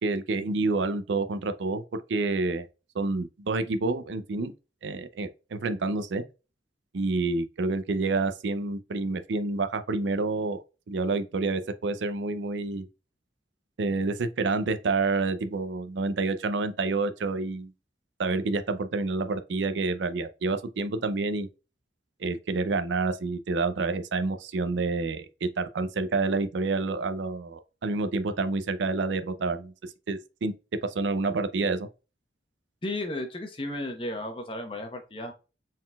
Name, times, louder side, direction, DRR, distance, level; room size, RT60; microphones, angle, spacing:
voice 1, 0.0-1.8 2.1-2.7 2.9-4.5 4.8-6.2 6.9-12.9 13.8-17.7 18.2-21.5 22.2-30.5 30.8-31.9, right 3 dB, 75° right, 0.5 m, -28 dB
voice 2, 32.8-35.3, left 1 dB, 30° left, 0.8 m, -34 dB
4.3 x 3.8 x 2.3 m
head